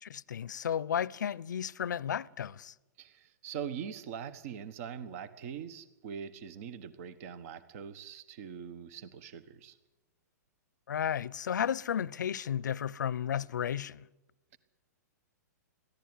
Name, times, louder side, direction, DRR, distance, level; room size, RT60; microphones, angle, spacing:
voice 1, 0.0-2.7 10.9-14.1, left 9 dB, 80° left, 0.6 m, -33 dB
voice 2, 3.0-9.8, right 8 dB, 50° right, 1.3 m, -42 dB
22.5 x 15.0 x 9.7 m
hypercardioid pair, 125°, 10 cm